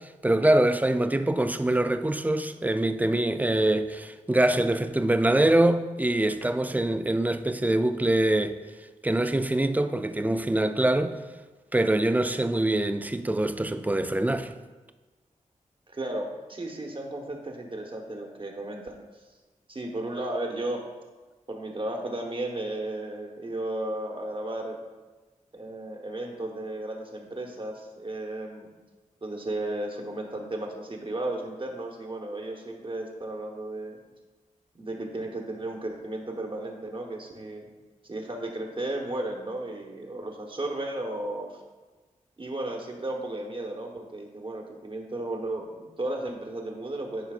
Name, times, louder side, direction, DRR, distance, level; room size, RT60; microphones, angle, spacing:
voice 1, 0.2-8.6 9.0-11.2 11.7-14.5, right 1 dB, 10° right, 0.4 m, -24 dB
voice 2, 15.9-19.2 19.7-20.9 21.5-24.8 25.5-28.7 29.2-34.0 34.8-37.7 38.0-41.6 42.4-47.3, right 1 dB, 40° right, 1.2 m, -34 dB
11.0 x 4.5 x 2.5 m
cardioid pair, 60°, 13 cm